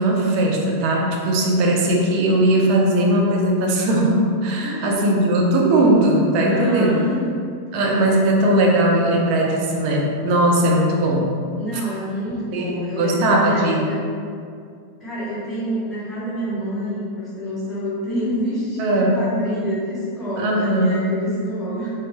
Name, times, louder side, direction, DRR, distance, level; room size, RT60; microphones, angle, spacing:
voice 1, 0.0-7.0 7.7-11.3 12.5-13.9 18.8-19.2 20.4-21.1, right 1 dB, 45° right, -1 dB, 0.5 m, -19 dB
voice 2, 4.6-5.0 6.5-7.3 7.7-7.8 11.6-14.0 15.0-21.9, equal, 5° left, -13 dB, 1.3 m, -28 dB
4.1 x 2.0 x 3.0 m, 2.3 s
figure-of-eight pair, 90°, 0 cm